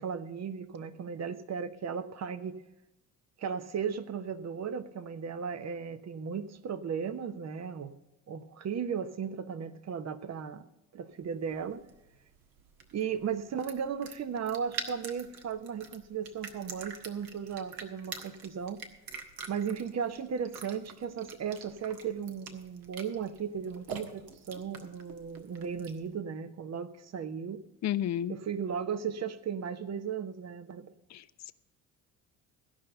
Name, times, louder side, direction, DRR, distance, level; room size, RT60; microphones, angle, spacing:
voice 1, 0.0-2.6 3.4-7.9 8.3-10.6 10.9-11.8 12.9-18.8 19.5-27.6 28.3-30.9, right 7 dB, 40° right, 1.0 m, -36 dB
sound 1, 11.3-26.1, right 5 dB, 60° right, 1.6 m, -46 dB
voice 2, 27.8-28.4 31.1-31.5, left 11 dB, 45° left, 0.7 m, -32 dB
15.5 x 5.6 x 7.9 m
hypercardioid pair, 65°, 40 cm